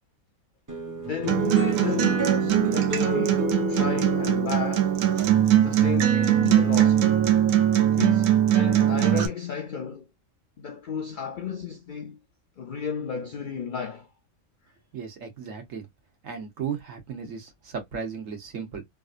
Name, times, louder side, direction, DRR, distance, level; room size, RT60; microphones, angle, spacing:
sound 1, 0.7-7.3, equal, 15° right, 0.7 m, -31 dB
voice 1, 1.1-4.9 5.6-7.1 8.0-10.1 10.6-12.2 12.6-14.1, left 6 dB, 70° left, 0.4 m, -33 dB
Acoustic guitar, 1.3-9.3, right 11 dB, 85° right, 1.0 m, -21 dB
voice 2, 14.9-15.9 16.2-18.8, right 6 dB, 70° right, 1.4 m, -35 dB
3.3 x 2.5 x 2.4 m
omnidirectional pair, 1.4 m